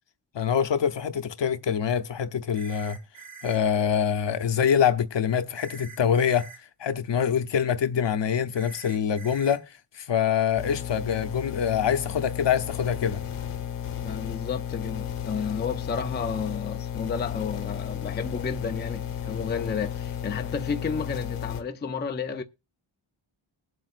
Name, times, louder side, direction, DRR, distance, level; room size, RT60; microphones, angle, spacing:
voice 1, 0.3-3.0 3.4-13.2, left 8 dB, 60° left, 0.8 m, -25 dB
sound 1, 2.5-3.6 5.5-6.6 8.5-9.6, right 5 dB, 85° right, 4.9 m, -45 dB
sound 2, 10.6-21.6, left 9 dB, 90° left, 1.2 m, -33 dB
voice 2, 14.0-22.4, left 6 dB, 20° left, 0.5 m, -32 dB
21.0 x 7.7 x 2.5 m
wide cardioid pair, 155°, 49 cm